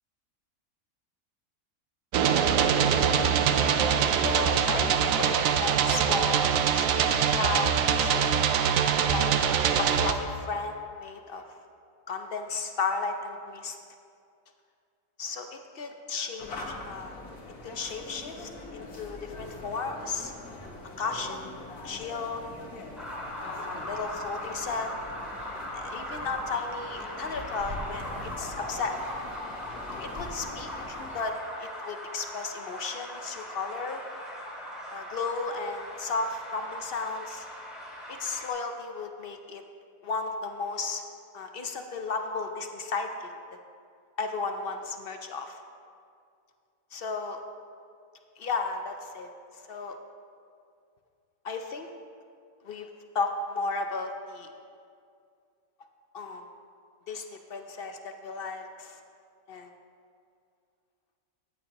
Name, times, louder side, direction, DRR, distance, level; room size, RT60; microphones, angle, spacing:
sound 1, 2.1-10.1, right 7 dB, 70° right, 1.0 m, -24 dB
voice 1, 4.2-8.5 9.0-9.4 9.8-11.6 12.1-13.8 15.2-17.2 17.6-20.3 21.0-21.5 21.8-22.4 23.4-24.9 25.7-29.0 30.0-34.0 34.9-37.5 38.1-39.6 40.0-41.0 41.3-43.3 44.2-45.6 46.9-47.4 48.4-50.0 51.4-51.9 52.6-52.9 53.1-54.5 56.1-56.5 57.1-59.0 59.5-59.7, left 4 dB, 55° left, 5 dB, 0.7 m, -34 dB
sound 2, 16.4-31.2, left 2 dB, 90° left, 1.7 m, -43 dB
sound 3, 23.0-38.5, left 1 dB, ahead, 2.2 m, -39 dB
14.0 x 9.5 x 2.9 m, 2.3 s
omnidirectional pair, 1.5 m